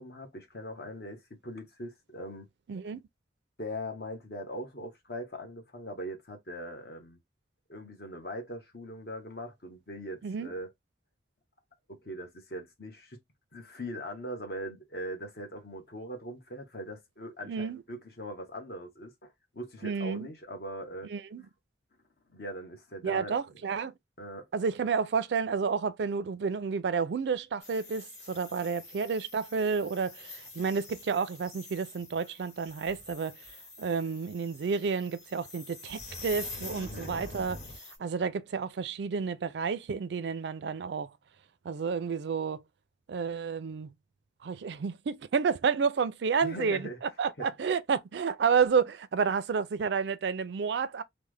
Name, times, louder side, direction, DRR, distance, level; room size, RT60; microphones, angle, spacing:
voice 1, 0.0-2.5 3.6-7.2 7.7-10.7 11.9-13.2 13.5-21.1 22.3-23.4 24.2-24.5 36.8-37.2 46.4-47.5, equal, 55° left, 1.1 m, -41 dB
voice 2, 2.7-3.0 10.2-10.5 17.5-17.8 19.8-20.3 21.1-21.4 23.0-23.9 24.5-33.4 33.8-37.6 38.0-41.1 41.6-42.6 43.1-43.9 44.4-46.9 47.2-51.0, right 5 dB, 70° right, 0.4 m, -30 dB
sound 1, 27.6-38.0, left 2 dB, 40° left, 1.6 m, -46 dB
3.2 x 2.1 x 3.3 m
head